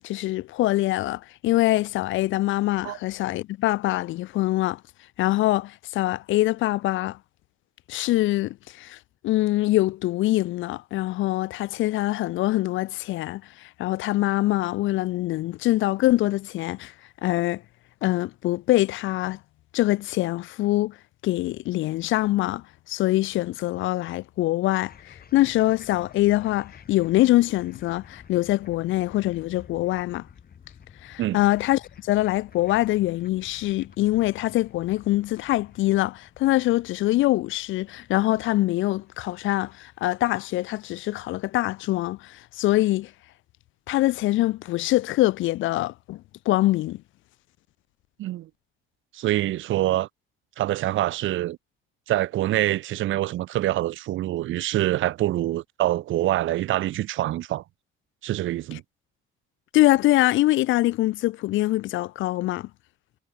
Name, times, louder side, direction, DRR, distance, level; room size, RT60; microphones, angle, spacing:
voice 1, 0.0-4.8 5.2-7.2 7.9-9.0 9.2-16.9 17.2-17.6 18.0-19.4 19.7-20.9 21.2-30.3 31.0-43.1 43.9-47.0 59.7-62.7, left 17 dB, 80° left, 0.5 m, -24 dB
sound 1, 24.9-40.2, left 7 dB, 50° left, 6.4 m, -51 dB
voice 2, 48.2-48.5 49.1-50.1 50.6-51.6 52.1-57.6 58.2-58.8, right 14 dB, 80° right, 0.9 m, -25 dB
cardioid pair, 90°, 20 cm